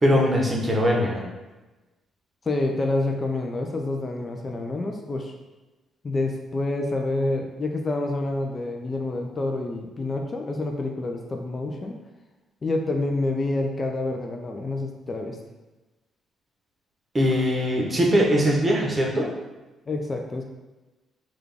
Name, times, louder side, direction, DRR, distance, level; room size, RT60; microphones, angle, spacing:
voice 1, 0.0-1.2 17.1-19.3, equal, 25° right, -1 dB, 0.8 m, -21 dB
voice 2, 2.5-5.3 6.0-12.0 12.6-15.4 19.9-20.4, left 2 dB, 30° left, 2 dB, 0.4 m, -28 dB
3.7 x 2.3 x 3.4 m, 1.1 s
cardioid pair, 90°, 0 cm